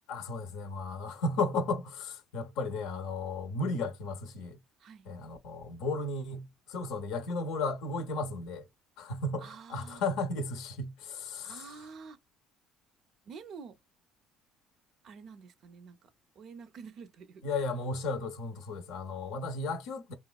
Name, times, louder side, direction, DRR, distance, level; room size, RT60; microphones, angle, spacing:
voice 1, 0.1-4.6 5.1-8.7 9.0-11.7 17.4-20.1, left 3 dB, 75° left, 0.5 m, -34 dB
voice 2, 4.8-5.1 9.4-10.0 11.4-12.2 13.2-13.8 15.0-17.4, right 5 dB, 60° right, 0.5 m, -48 dB
3.0 x 2.2 x 2.2 m
supercardioid pair, 75°, 0 cm